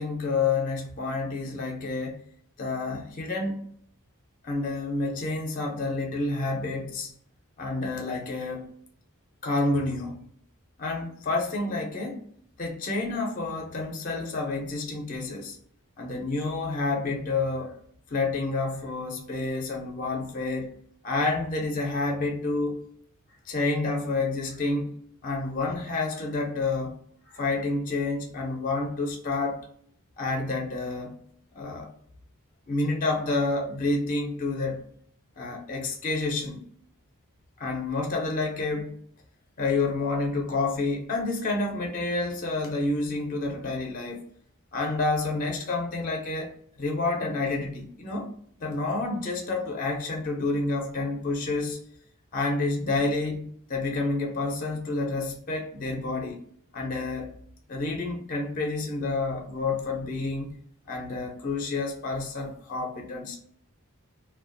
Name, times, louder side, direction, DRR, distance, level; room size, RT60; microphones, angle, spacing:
voice 1, 0.0-2.2 2.6-3.7 4.4-7.2 7.6-8.7 9.4-10.3 10.8-12.2 12.6-15.6 16.0-17.8 18.1-20.7 21.0-22.8 23.5-24.9 25.2-27.0 27.3-29.6 30.2-31.2 31.5-31.9 32.7-34.9 35.4-36.6 37.6-39.0 39.6-44.2 44.7-46.5 46.8-48.3 48.6-51.8 52.3-56.4 56.7-57.3 57.7-63.4, left 3 dB, 35° left, 1 dB, 0.4 m, -29 dB
2.3 x 2.2 x 2.5 m, 0.63 s
head